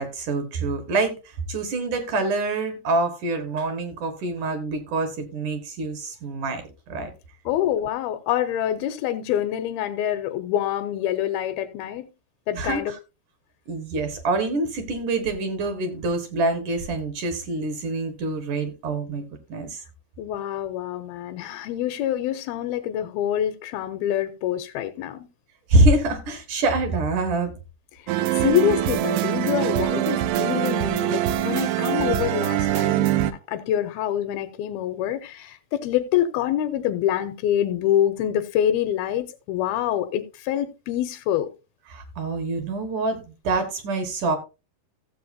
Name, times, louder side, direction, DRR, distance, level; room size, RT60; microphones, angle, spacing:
voice 1, 0.0-7.1 12.5-13.0 13.7-19.2 19.5-19.8 25.7-27.5 41.9-44.4, right 2 dB, 60° right, 2.6 m, -25 dB
voice 2, 7.5-12.1 12.5-12.9 20.2-25.3 28.0-33.1 33.5-41.5, left 11 dB, 80° left, 2.4 m, -26 dB
sound 1, 28.1-33.3, right 14 dB, 80° right, 2.6 m, -23 dB
15.5 x 7.5 x 2.6 m
omnidirectional pair, 4.6 m